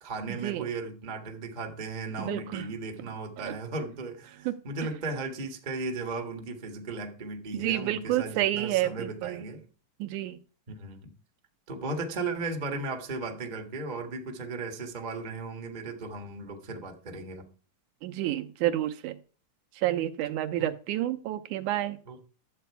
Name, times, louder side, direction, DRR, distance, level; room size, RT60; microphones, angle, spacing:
voice 1, 0.0-9.6 10.7-11.1 11.7-17.5 20.6-20.7 22.1-22.2, right 3 dB, 35° right, 0.7 m, -36 dB
voice 2, 2.2-2.7 3.4-3.5 4.5-4.6 7.5-9.4 10.0-10.4 18.0-19.2 19.8-22.0, right 14 dB, 75° right, 2.2 m, -29 dB
12.0 x 7.9 x 4.7 m
omnidirectional pair, 3.6 m